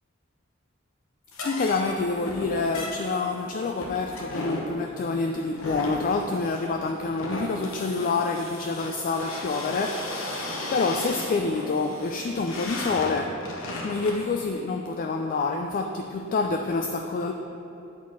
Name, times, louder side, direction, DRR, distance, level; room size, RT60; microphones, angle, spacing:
sound 1, 1.3-14.3, left 1 dB, 90° left, 1.0 m, -35 dB
voice 1, 1.4-13.4 13.8-17.3, left 3 dB, 45° left, 4 dB, 0.3 m, -27 dB
8.3 x 4.1 x 4.8 m, 3.0 s
head